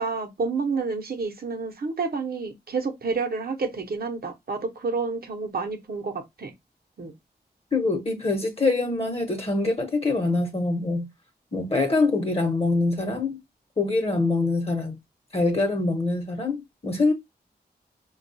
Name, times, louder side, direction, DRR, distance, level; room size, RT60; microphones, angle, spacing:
voice 1, 0.0-6.5 7.0-7.1, right 4 dB, 60° right, 0.8 m, -29 dB
voice 2, 7.7-11.1 11.5-13.4 13.8-14.9 15.3-17.1, left 3 dB, 35° left, 0.9 m, -24 dB
4.3 x 2.3 x 2.6 m
wide cardioid pair, 65°, 17 cm